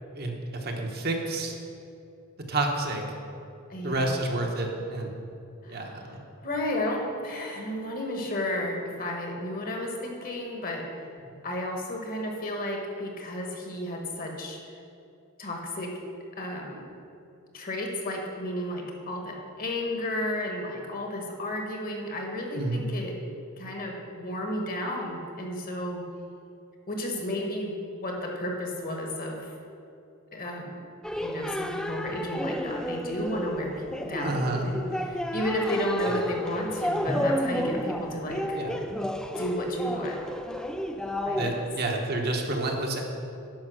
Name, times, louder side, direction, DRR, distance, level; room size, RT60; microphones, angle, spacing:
voice 1, 0.1-1.6 2.5-3.0 3.8-5.2 5.7-6.2 11.3-11.4 22.5-22.8 34.2-34.7 36.1-36.2 38.5-38.8 41.3-43.0, right 2 dB, 45° right, 2 dB, 1.0 m, -29 dB
voice 2, 3.7-4.3 5.6-6.1 6.4-10.9 11.4-14.6 15.4-15.9 16.4-16.9 17.5-23.2 23.6-26.1 26.9-29.5 30.3-30.8 31.2-38.6 39.3-40.2 41.3-41.7, left 1 dB, 40° left, 1 dB, 1.3 m, -33 dB
sound 1, 31.0-41.8, equal, 5° left, 0.3 m, -31 dB
10.5 x 5.3 x 6.3 m, 2.7 s
head